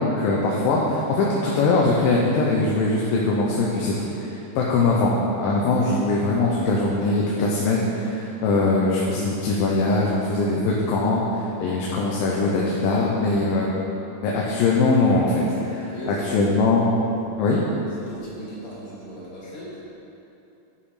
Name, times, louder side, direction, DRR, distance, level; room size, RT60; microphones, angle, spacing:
voice 1, 0.0-13.7 14.2-16.8 17.4-17.7, left 3 dB, 85° left, -4 dB, 2.6 m, -22 dB
voice 2, 15.7-16.5 18.0-19.9, left 1 dB, 45° left, -7 dB, 2.7 m, -38 dB
11.0 x 5.4 x 4.9 m, 2.9 s
omnidirectional pair, 4.0 m